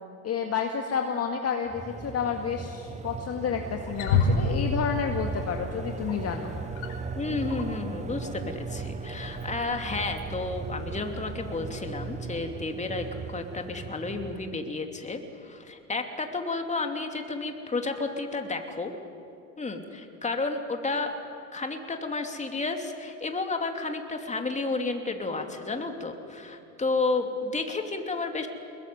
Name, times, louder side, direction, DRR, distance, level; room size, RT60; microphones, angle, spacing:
voice 1, 0.2-6.5, left 6 dB, 35° left, 3 dB, 1.9 m, -30 dB
sound 1, 1.7-14.8, right 5 dB, 15° right, 1.0 m, -38 dB
Wild animals, 3.7-12.2, left 3 dB, 70° left, 4.8 m, -33 dB
voice 2, 7.1-18.9 19.6-21.1 21.5-28.5, left 3 dB, 15° left, 4 dB, 2.9 m, -31 dB
22.0 x 21.5 x 9.6 m, 2.6 s
hypercardioid pair, 80°, 42 cm